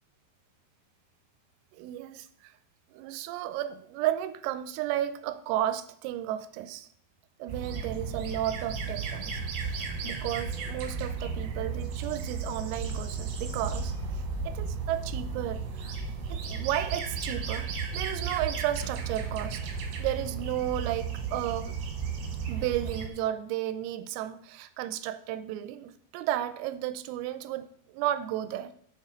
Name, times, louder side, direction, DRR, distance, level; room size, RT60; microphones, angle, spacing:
voice 1, 1.7-2.5 2.9-6.9 7.4-15.9 16.3-19.6 20.0-21.8 22.5-28.7, right 12 dB, 90° right, 12 dB, 3.3 m, -33 dB
sound 1, 7.5-23.1, right 5 dB, 70° right, 3.3 m, -34 dB
7.3 x 6.5 x 5.1 m, 0.64 s
omnidirectional pair, 5.9 m